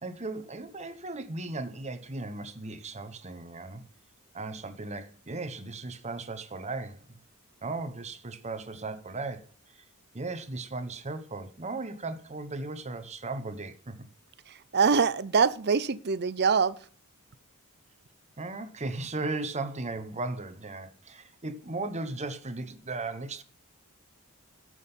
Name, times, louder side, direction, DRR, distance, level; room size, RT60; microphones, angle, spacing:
voice 1, 0.0-3.8 4.3-7.1 7.6-9.5 10.1-14.0 18.4-23.4, right 3 dB, 30° right, 1.1 m, -36 dB
voice 2, 14.5-16.8, right 5 dB, 50° right, 0.6 m, -24 dB
13.5 x 6.4 x 5.6 m
head